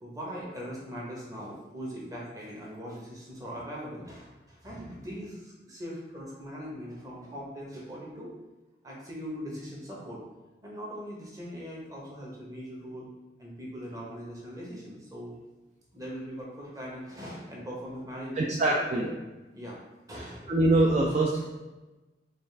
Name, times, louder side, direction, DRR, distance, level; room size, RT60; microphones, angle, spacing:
voice 1, 0.0-8.3 8.8-10.2 10.6-13.0 13.4-15.4 15.9-19.1 19.5-19.8 20.1-20.5, equal, 20° right, -4 dB, 1.0 m, -40 dB
voice 2, 18.4-19.1 20.1-21.5, right 2 dB, 40° right, -2 dB, 0.4 m, -24 dB
5.3 x 2.4 x 3.3 m, 1.1 s
head